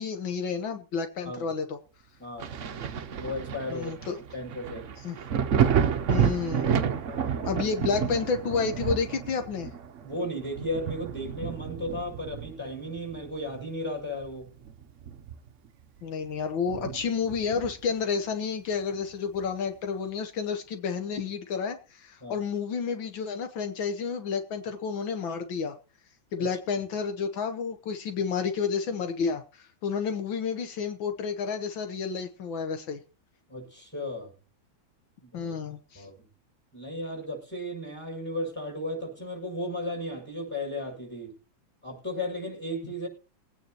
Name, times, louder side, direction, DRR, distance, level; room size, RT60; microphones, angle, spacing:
voice 1, 0.0-1.8 3.7-4.2 5.0-5.2 6.1-6.8 7.4-9.7 16.0-25.8 26.3-33.0 35.3-36.1, left 5 dB, 75° left, 7 dB, 1.8 m, -30 dB
voice 2, 2.2-2.6 3.2-3.9 4.3-4.9 7.0-7.5 10.0-14.5 22.2-22.4 26.4-26.5 33.5-34.3 35.2-35.5 35.9-36.2 36.7-41.4 41.8-43.1, left 1 dB, 5° left, 1 dB, 6.4 m, -35 dB
Thunder, 2.4-13.7 14.1-15.7 16.0-16.1 16.7-18.0 19.4-19.5, right 8 dB, 55° right, 0.8 m, -30 dB
22.5 x 9.3 x 3.0 m, 0.33 s
omnidirectional pair, 2.1 m